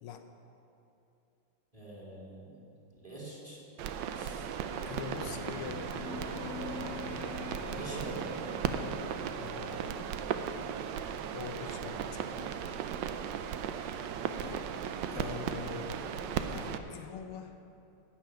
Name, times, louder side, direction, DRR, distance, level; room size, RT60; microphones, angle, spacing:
voice 1, 1.7-2.7 2.9-3.6 4.1-4.6 7.5-8.3 11.6-11.9, right 2 dB, 15° right, -5 dB, 2.5 m, -45 dB
sound 1, 3.8-16.8, right 8 dB, 75° right, 1.1 m, -37 dB
sound 2, 4.7-9.4, left 5 dB, 60° left, 1.0 m, -44 dB
voice 2, 4.8-5.9 7.7-7.8 8.6-10.3 11.3-12.4 14.4-14.7 15.1-17.6, left 7 dB, 80° left, 6 dB, 1.6 m, -44 dB
sound 3, 6.5-12.1 13.8-14.5, right 11 dB, 60° right, 1.8 m, -50 dB
12.0 x 5.9 x 9.1 m, 2.8 s
omnidirectional pair, 2.4 m